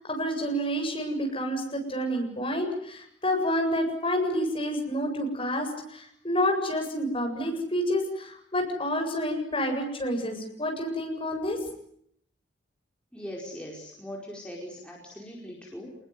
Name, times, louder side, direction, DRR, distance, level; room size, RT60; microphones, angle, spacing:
voice 1, 0.0-11.6, equal, 30° left, 2 dB, 7.9 m, -29 dB
voice 2, 13.1-16.0, equal, 5° left, -2 dB, 4.9 m, -40 dB
28.0 x 21.0 x 9.7 m, 0.70 s
head